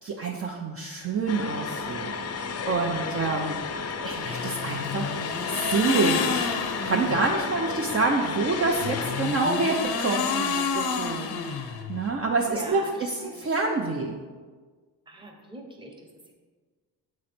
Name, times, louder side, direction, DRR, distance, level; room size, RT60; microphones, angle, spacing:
voice 1, 0.0-3.6 4.0-5.1 5.5-14.1, right 3 dB, 35° right, 0 dB, 0.5 m, -27 dB
sound 1, 1.3-9.5, left 5 dB, 40° left, 0.5 m, -33 dB
sound 2, 4.2-7.3 8.7-12.1, left 6 dB, 80° left, 0.6 m, -29 dB
voice 2, 12.5-13.5 15.1-16.3, right 1 dB, 10° right, 1 dB, 0.9 m, -43 dB
7.7 x 3.1 x 4.2 m, 1.5 s
cardioid pair, 110°, 39 cm